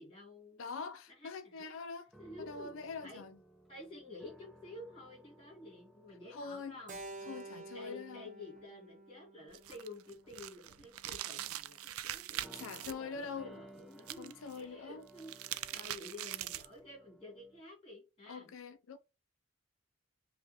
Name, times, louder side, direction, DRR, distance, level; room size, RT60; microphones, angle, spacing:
voice 1, 0.0-0.6 1.1-1.7 2.2-2.8 3.0-3.2 3.7-12.6 12.8-18.5, left 2 dB, 25° left, 2.4 m, -51 dB
voice 2, 0.6-2.1 2.5-3.4 6.3-6.8 7.2-8.3 12.5-13.5 14.2-15.1 18.3-19.0, left 4 dB, 70° left, 0.5 m, -44 dB
sound 1, 2.1-8.2 8.6-8.8 9.8-10.5 12.4-17.6, right 1 dB, ahead, 0.9 m, -59 dB
Keyboard (musical), 6.9-11.3, right 3 dB, 35° right, 0.6 m, -51 dB
sound 2, 9.5-12.9 14.0-14.6 15.1-16.8, right 13 dB, 90° right, 0.4 m, -42 dB
5.5 x 2.4 x 2.9 m
head